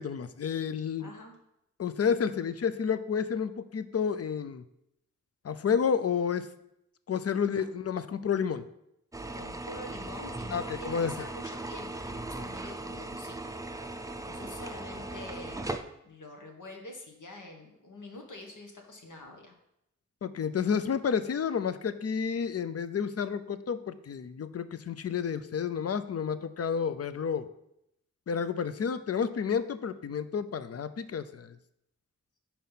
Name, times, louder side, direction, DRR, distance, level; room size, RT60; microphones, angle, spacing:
voice 1, 0.0-1.1 1.8-4.6 5.4-6.5 7.1-8.6 10.5-11.1 20.2-27.5 28.3-31.5, left 7 dB, 55° left, 12 dB, 0.5 m, -30 dB
voice 2, 1.0-1.4 7.4-7.7 9.3-13.5 14.3-15.6 16.0-19.5, left 2 dB, 80° left, 2 dB, 1.3 m, -46 dB
sound 1, 9.1-15.8, right 2 dB, 10° right, 0.4 m, -38 dB
5.6 x 4.3 x 5.6 m, 0.81 s
wide cardioid pair, 85°, 30 cm